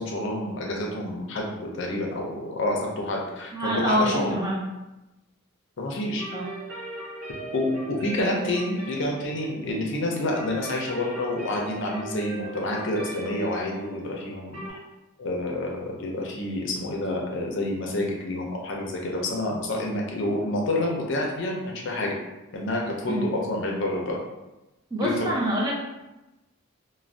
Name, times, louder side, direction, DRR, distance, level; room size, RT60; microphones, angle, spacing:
voice 1, 0.0-4.3 5.8-6.2 7.5-14.8 15.2-22.2 22.5-24.2 25.0-25.3, left 1 dB, 60° left, -1 dB, 0.5 m, -28 dB
voice 2, 3.5-4.6 6.3-6.4 23.1-23.3 24.9-25.8, equal, 20° right, -4 dB, 0.5 m, -25 dB
sound 1, 6.2-14.7, right 3 dB, 70° right, 1.3 m, -39 dB
2.5 x 2.2 x 3.3 m, 0.99 s
head